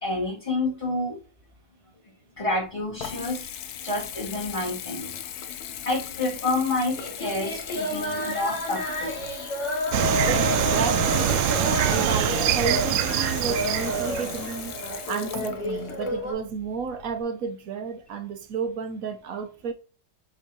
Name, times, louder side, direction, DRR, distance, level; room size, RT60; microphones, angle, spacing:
voice 1, 0.0-1.2 2.4-3.5 3.8-5.1 5.8-9.2, left 2 dB, 15° left, 2.3 m, -28 dB
Water tap faucet / Bathtub (filling or washing) / Trickle dribble, 2.4-17.2, left 9 dB, 65° left, 1.0 m, -39 dB
sound 1, 7.0-16.3, left 1 dB, 35° left, 3.6 m, -30 dB
sound 2, 9.9-15.0, right 10 dB, 85° right, 1.4 m, -25 dB
voice 2, 10.3-11.4 11.9-14.8 15.0-19.7, right 6 dB, 65° right, 0.9 m, -32 dB
7.6 x 4.5 x 2.8 m
omnidirectional pair, 2.2 m